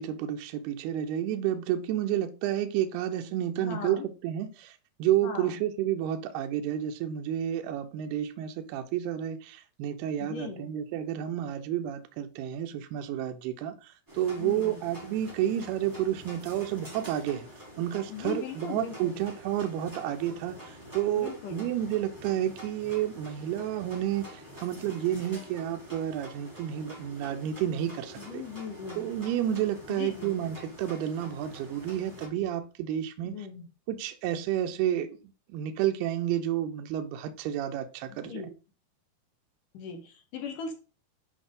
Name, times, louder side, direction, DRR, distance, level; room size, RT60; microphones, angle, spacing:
voice 1, 0.0-17.5 17.8-28.4 29.0-33.4 33.9-35.1 35.5-38.4, right 11 dB, 85° right, 2.7 m, -30 dB
voice 2, 3.6-4.1 5.2-5.6 10.2-10.7 14.4-14.8 18.1-19.2 21.1-21.7 28.2-29.1 29.9-30.3 33.2-33.6 38.2-38.5 39.7-40.7, left 6 dB, 65° left, 2.5 m, -39 dB
sound 1, 14.1-32.3, equal, 5° right, 3.1 m, -47 dB
8.4 x 5.2 x 3.8 m
omnidirectional pair, 4.5 m